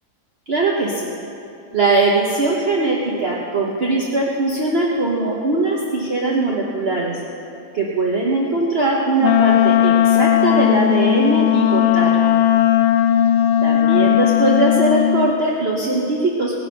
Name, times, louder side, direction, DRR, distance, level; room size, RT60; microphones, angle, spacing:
voice 1, 0.5-1.1 1.7-7.2 7.7-12.3 13.6-16.5, right 2 dB, 45° right, -3 dB, 1.4 m, -20 dB
Wind instrument woodwind instrument, 9.2-15.3, left 11 dB, 70° left, 1.0 m, -16 dB
18.0 x 6.3 x 9.3 m, 2.8 s
omnidirectional pair, 1.5 m